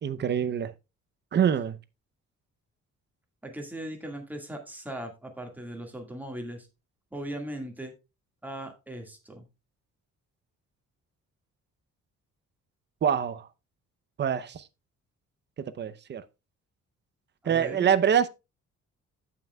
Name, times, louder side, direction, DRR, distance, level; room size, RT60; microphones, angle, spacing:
voice 1, 0.0-0.7 1.3-1.8 13.0-13.5 14.2-14.7 15.6-16.2 17.4-18.3, right 8 dB, 35° right, 0.6 m, -25 dB
voice 2, 3.4-6.7 7.1-7.9 8.4-9.5 17.4-17.9, right 1 dB, 5° right, 1.7 m, -39 dB
15.0 x 5.7 x 2.2 m
cardioid pair, 165°, 29 cm